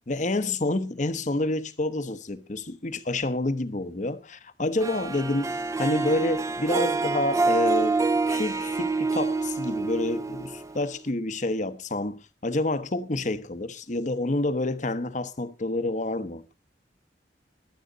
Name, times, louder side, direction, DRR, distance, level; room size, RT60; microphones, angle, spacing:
voice 1, 0.1-8.0 8.3-16.4, left 2 dB, 40° left, 1.0 m, -28 dB
Harp, 4.8-11.1, right 3 dB, 20° right, 0.8 m, -27 dB
22.5 x 8.0 x 3.9 m
head